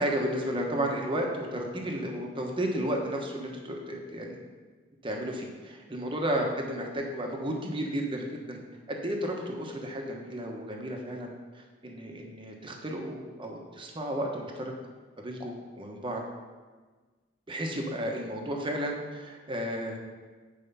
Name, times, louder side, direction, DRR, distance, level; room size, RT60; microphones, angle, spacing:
voice 1, 0.0-4.4 5.0-8.6 8.9-14.7 15.2-16.2 17.5-20.0, right 1 dB, 25° right, 1 dB, 1.2 m, -33 dB
9.1 x 4.8 x 5.5 m, 1.4 s
head